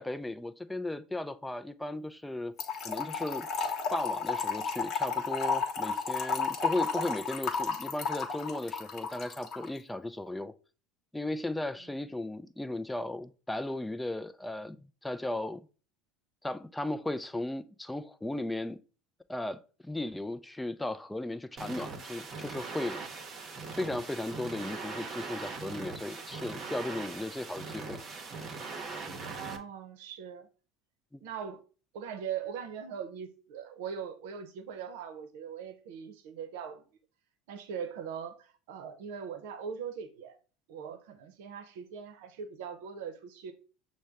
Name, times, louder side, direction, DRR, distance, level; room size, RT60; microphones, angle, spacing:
voice 1, 0.0-2.5 2.8-10.5 11.1-15.6 16.4-18.8 19.3-23.0 23.8-28.0 31.1-31.2, left 1 dB, 5° left, 0.4 m, -36 dB
Trickle dribble / Fill (with liquid), 2.6-9.7, left 5 dB, 50° left, 1.0 m, -32 dB
sound 1, 21.6-29.6, right 4 dB, 35° right, 0.8 m, -41 dB
voice 2, 29.2-30.5 31.2-31.6 31.9-36.9 37.5-40.4 40.7-43.5, right 7 dB, 75° right, 0.7 m, -41 dB
6.2 x 2.1 x 3.4 m
supercardioid pair, 95°, 0 cm